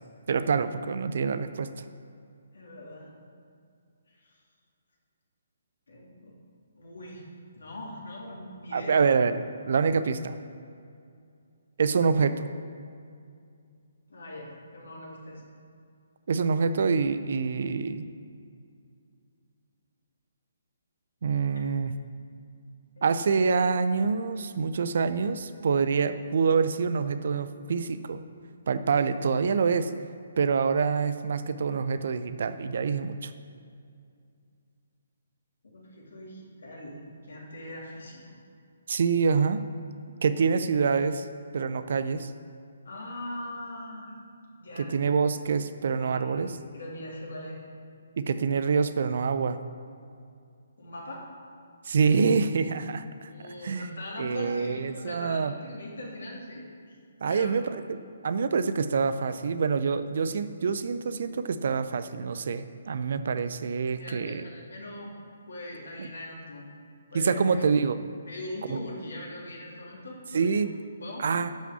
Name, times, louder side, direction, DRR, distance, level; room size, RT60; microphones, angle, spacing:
voice 1, 0.3-1.7 8.7-9.4 9.6-10.4 11.8-12.5 16.3-18.1 21.2-21.9 23.0-28.2 28.7-29.9 30.4-33.3 38.9-39.6 40.2-41.3 41.5-42.3 44.8-46.5 48.2-49.6 51.8-53.3 53.6-55.5 57.2-58.0 58.2-64.4 66.0-66.1 67.1-68.0 68.7-68.8 70.3-70.7 71.2-71.5, right 5 dB, 55° right, 11 dB, 0.6 m, -26 dB
voice 2, 2.5-3.1 4.1-4.4 5.9-6.3 6.8-7.3 7.6-9.0 14.1-15.4 22.9-23.1 35.6-38.2 42.8-44.1 44.6-44.9 45.9-47.6 50.8-51.3 53.3-57.0 57.2-57.5 63.9-65.1 65.5-66.7 67.1-67.7 68.3-70.6 70.9-71.2, left 1 dB, 65° left, -3 dB, 3.1 m, -41 dB
11.5 x 6.0 x 7.0 m, 2.4 s
figure-of-eight pair, 135°, 0 cm